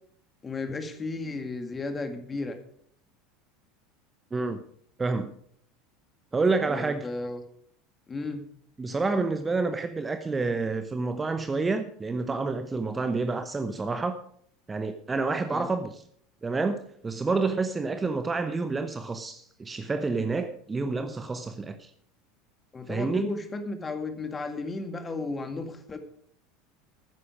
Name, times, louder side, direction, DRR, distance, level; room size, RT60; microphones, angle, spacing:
voice 1, 0.4-2.6 6.7-7.4 8.1-8.4 15.5-15.7 22.7-26.0, left 3 dB, 20° left, 7 dB, 2.0 m, -34 dB
voice 2, 4.3-4.6 5.0-5.3 6.3-7.1 8.8-14.2 14.7-16.0 16.4-16.8 17.0-21.9 22.9-23.3, right 3 dB, 20° right, 9 dB, 0.9 m, -28 dB
13.5 x 9.9 x 5.0 m, 0.63 s
figure-of-eight pair, 75°, 0 cm